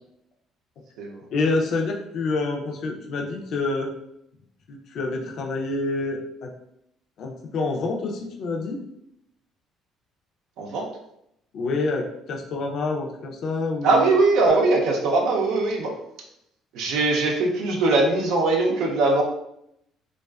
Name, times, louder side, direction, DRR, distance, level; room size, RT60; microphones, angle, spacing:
voice 1, 1.3-3.9 4.7-6.5 7.2-8.8 11.5-12.0 12.3-14.1, left 3 dB, 65° left, 0 dB, 0.5 m, -27 dB
voice 2, 10.6-10.9 13.8-16.0 16.7-19.2, right 3 dB, 75° right, 1 dB, 0.5 m, -21 dB
2.3 x 2.3 x 2.3 m, 0.77 s
supercardioid pair, 85°, 0 cm